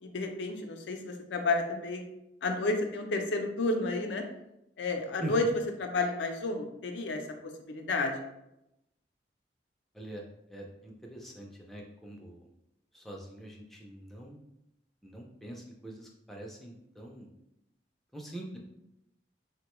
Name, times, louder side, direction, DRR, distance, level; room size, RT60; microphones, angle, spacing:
voice 1, 0.0-2.0 2.4-4.2 4.8-5.4 5.8-7.2 7.7-8.1, left 3 dB, 85° left, 4 dB, 0.5 m, -31 dB
voice 2, 10.5-12.4 12.9-14.4 15.0-17.3 18.1-18.6, right 1 dB, ahead, -2 dB, 0.4 m, -43 dB
3.6 x 2.1 x 2.9 m, 0.85 s
head